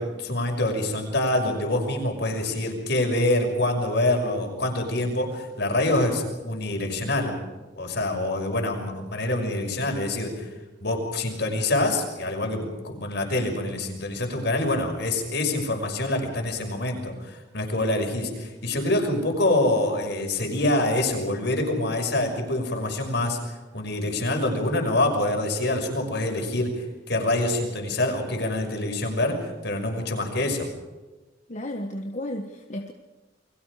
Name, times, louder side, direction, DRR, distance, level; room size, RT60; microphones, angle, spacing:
voice 1, 0.0-7.4 7.8-10.5 10.8-23.4 23.7-30.7, left 1 dB, 65° left, 3 dB, 6.0 m, -26 dB
voice 2, 31.5-32.9, left 1 dB, 40° left, 3 dB, 1.5 m, -33 dB
29.5 x 23.0 x 5.0 m, 1.2 s
head